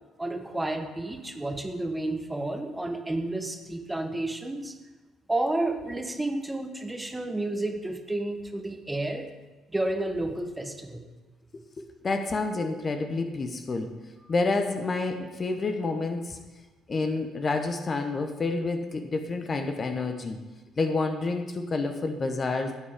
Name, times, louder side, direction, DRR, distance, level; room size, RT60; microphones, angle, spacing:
voice 1, 0.2-4.7 5.3-9.3 9.7-11.0, right 2 dB, 10° right, 6 dB, 1.1 m, -31 dB
voice 2, 11.8-13.9 14.3-16.4 16.9-20.4 20.8-22.8, left 3 dB, 35° left, 7 dB, 1.0 m, -29 dB
13.5 x 8.8 x 3.6 m, 1.2 s
figure-of-eight pair, 50°, 0 cm